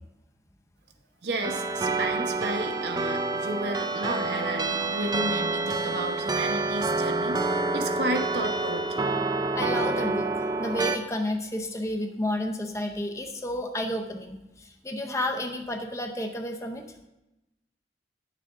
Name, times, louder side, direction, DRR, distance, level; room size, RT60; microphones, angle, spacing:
voice 1, 1.2-9.1, right 2 dB, 75° right, 5 dB, 1.0 m, -32 dB
sound 1, 1.4-11.0, right 3 dB, 25° right, 0.4 m, -28 dB
voice 2, 9.5-16.9, left 1 dB, 15° left, 3 dB, 0.6 m, -31 dB
10.0 x 6.7 x 3.6 m, 0.95 s
head